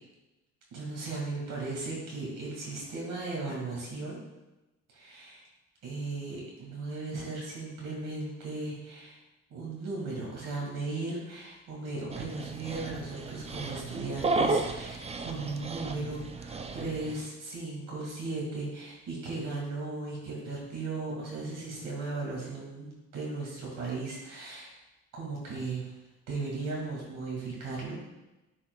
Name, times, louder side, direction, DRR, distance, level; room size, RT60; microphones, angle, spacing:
voice 1, 0.7-4.2 4.9-5.4 5.8-9.2 9.5-24.7 25.1-25.9 26.3-28.0, right 3 dB, 75° right, -4 dB, 2.2 m, -36 dB
Dog, 12.1-17.1, right 3 dB, 20° right, 0.5 m, -33 dB
9.9 x 4.3 x 2.3 m, 1.0 s
cardioid pair, 105°, 32 cm